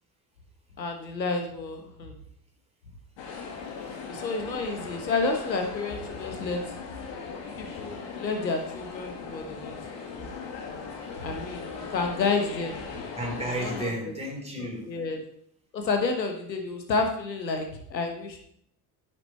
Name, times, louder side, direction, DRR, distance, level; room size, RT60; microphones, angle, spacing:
voice 1, 0.8-2.2 4.1-6.6 7.5-9.8 10.1-10.3 11.2-12.8 13.4-14.1 14.9-15.2 15.7-18.4, left 3 dB, 90° left, 4 dB, 1.4 m, -30 dB
sound 1, 3.2-13.9, left 5 dB, 60° left, 2.1 m, -38 dB
voice 2, 13.2-14.9, right 1 dB, 10° right, -1 dB, 3.8 m, -34 dB
10.5 x 7.2 x 4.3 m, 0.67 s
figure-of-eight pair, 55°, 49 cm